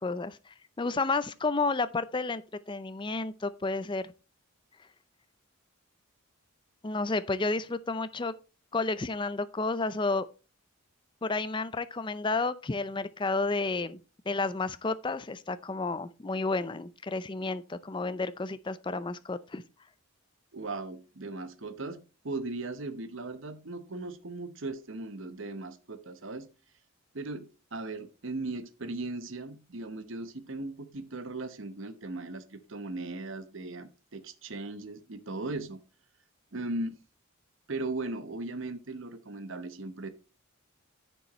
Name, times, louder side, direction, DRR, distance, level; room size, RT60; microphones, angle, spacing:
voice 1, 0.0-2.4 2.7-4.0 6.8-8.3 8.7-10.3 11.2-14.0 14.3-19.6, left 3 dB, 20° left, 0.4 m, -31 dB
voice 2, 20.5-22.0 22.2-26.5 27.1-35.8 36.5-37.0 37.7-40.1, right 2 dB, 60° right, 0.9 m, -38 dB
9.8 x 6.9 x 3.0 m
head